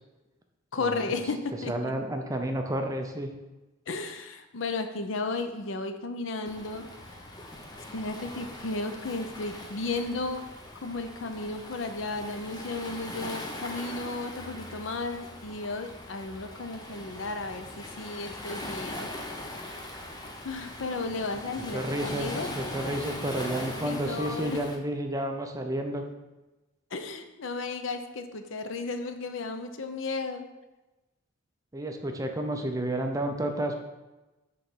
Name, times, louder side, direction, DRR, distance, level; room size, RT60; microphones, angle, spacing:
voice 1, 0.7-1.9 3.9-7.2 7.9-10.4 10.8-19.1 19.7-19.8 20.4-22.5 23.8-24.6 26.9-30.5, left 3 dB, 75° left, 8 dB, 0.6 m, -34 dB
voice 2, 1.7-3.3 21.7-26.0 31.7-33.7, right 1 dB, 15° right, 4 dB, 0.5 m, -31 dB
Waves surf, 6.4-24.8, left 1 dB, 20° left, 0.7 m, -41 dB
6.5 x 3.4 x 6.0 m, 1.1 s
head